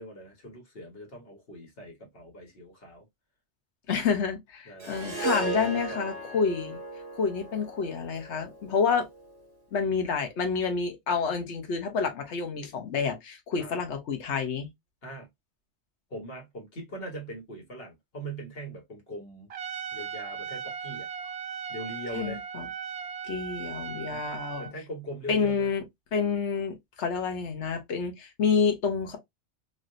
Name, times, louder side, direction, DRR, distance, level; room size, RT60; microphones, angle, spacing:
voice 1, 0.0-3.0 4.6-6.2 13.6-13.8 15.0-15.3 16.1-21.1 21.7-22.4 24.1-25.7, right 1 dB, 60° left, 1.6 m, -41 dB
voice 2, 3.9-6.8 7.1-9.1 9.7-14.7 22.1-22.7 23.2-24.6 25.3-25.8 26.1-29.2, left 5 dB, 80° left, 1.2 m, -28 dB
Harp, 4.8-9.2, right 2 dB, 40° right, 1.1 m, -36 dB
Trumpet, 19.5-24.7, right 7 dB, 70° right, 0.3 m, -37 dB
3.2 x 2.7 x 2.6 m
omnidirectional pair, 1.2 m